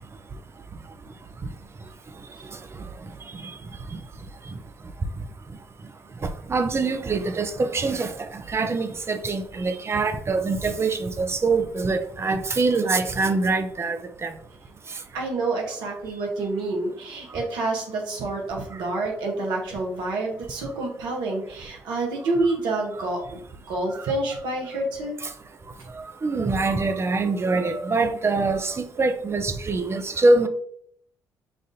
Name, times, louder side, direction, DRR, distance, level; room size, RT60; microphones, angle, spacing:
voice 1, 6.5-8.1 8.5-14.3 26.2-30.5, right 3 dB, 35° right, 0.6 m, -24 dB
voice 2, 15.1-23.4 23.7-25.2, right 2 dB, 75° right, 1.0 m, -28 dB
5.8 x 2.5 x 2.6 m
hypercardioid pair, 50°, 8 cm